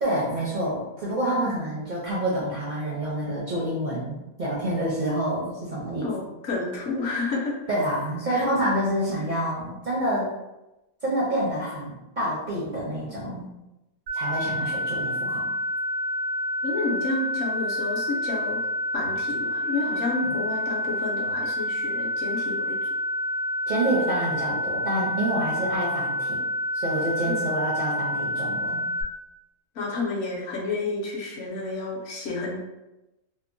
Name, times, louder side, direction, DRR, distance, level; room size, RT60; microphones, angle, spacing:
voice 1, 0.0-6.1 7.7-10.3 11.0-13.5 14.1-15.5 20.2-20.4 23.7-26.4 26.7-28.9, right 1 dB, 60° right, -7 dB, 0.5 m, -27 dB
voice 2, 6.0-7.6 8.3-8.4 16.6-18.6 18.9-22.9 27.3-27.5 29.7-32.6, left 3 dB, 65° left, -2 dB, 0.8 m, -30 dB
sound 1, 14.1-29.0, equal, 85° right, 1.1 m, -28 dB
2.8 x 2.1 x 2.5 m, 0.97 s
omnidirectional pair, 1.5 m